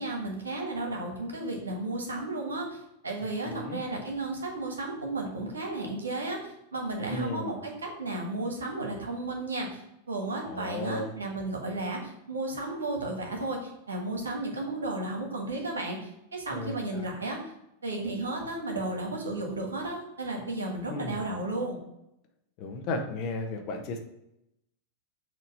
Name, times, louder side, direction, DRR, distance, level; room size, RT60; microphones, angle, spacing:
voice 1, 0.0-2.8 3.0-9.8 10.1-16.0 16.3-17.4 17.8-21.8, right 2 dB, 85° right, 1 dB, 1.4 m, -33 dB
voice 2, 3.4-3.8 7.1-7.5 10.4-11.1 16.5-17.1 20.9-21.3 22.6-24.0, left 2 dB, 50° left, 4 dB, 1.0 m, -34 dB
6.1 x 3.0 x 5.3 m, 0.83 s
hypercardioid pair, 95°, 0 cm